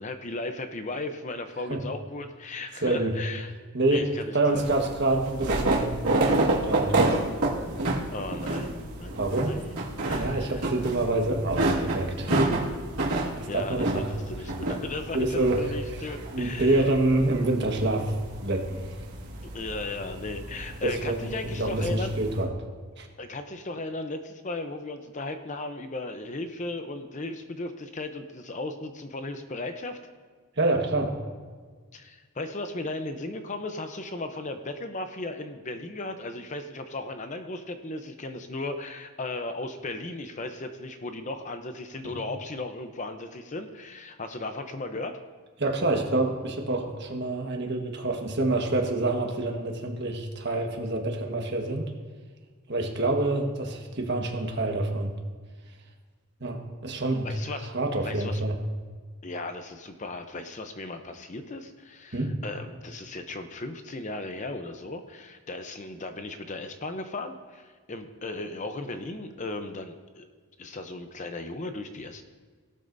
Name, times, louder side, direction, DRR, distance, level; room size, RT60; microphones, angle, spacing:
voice 1, 0.0-3.5 3.9-4.7 8.1-10.6 13.5-16.9 19.4-22.1 23.2-30.0 31.9-45.2 57.2-57.7 58.0-58.4 59.2-70.3 70.6-72.2, left 2 dB, 35° left, 7 dB, 0.7 m, -36 dB
voice 2, 2.8-3.1 3.7-4.1 4.3-6.0 6.3-6.9 9.2-9.5 10.1-12.4 13.4-14.1 15.1-18.1 18.4-18.8 20.8-22.5 23.0-23.1 30.6-31.1 45.6-51.9 52.7-55.1 56.4-57.3 57.7-58.5 62.1-62.3, right 2 dB, 50° right, 2 dB, 1.4 m, -27 dB
sound 1, 4.5-22.4, right 2 dB, 85° right, 2.1 m, -30 dB
17.5 x 12.0 x 2.7 m, 1.5 s
head